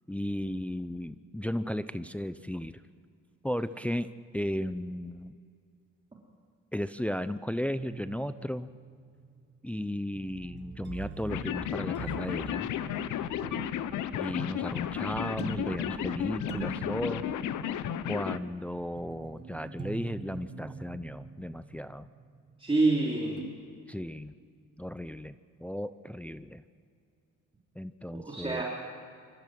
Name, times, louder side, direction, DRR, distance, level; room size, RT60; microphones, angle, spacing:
voice 1, 0.1-2.8 3.4-5.3 6.7-8.7 9.6-12.7 14.2-17.3 18.1-22.1 23.9-24.3 24.8-25.3 25.6-26.6 27.8-28.6, equal, 5° left, 12 dB, 0.6 m, -35 dB
sound 1, 7.7-23.0 23.4-23.5, right 5 dB, 35° right, 1.6 m, -44 dB
sound 2, 11.3-18.4, left 10 dB, 80° left, 0.9 m, -33 dB
voice 2, 13.4-13.7 22.6-23.4 28.1-28.6, right 2 dB, 20° right, -3 dB, 3.3 m, -28 dB
25.5 x 14.5 x 7.7 m, 2.3 s
cardioid pair, 90°, 30 cm